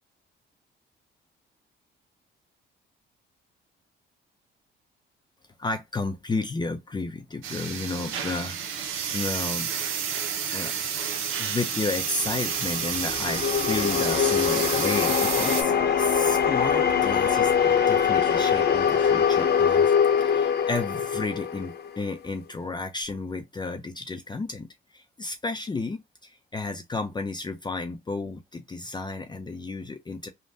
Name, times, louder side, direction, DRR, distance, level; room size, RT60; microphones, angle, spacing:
voice 1, 5.6-9.7 10.5-10.7 11.4-19.9 20.2-30.3, left 3 dB, 20° left, 0.5 m, -32 dB
sound 1, 7.4-15.6, right 8 dB, 90° right, 0.7 m, -30 dB
sound 2, 11.8-22.2, left 7 dB, 55° left, 0.8 m, -23 dB
3.3 x 2.2 x 2.6 m
cardioid pair, 90°, 20 cm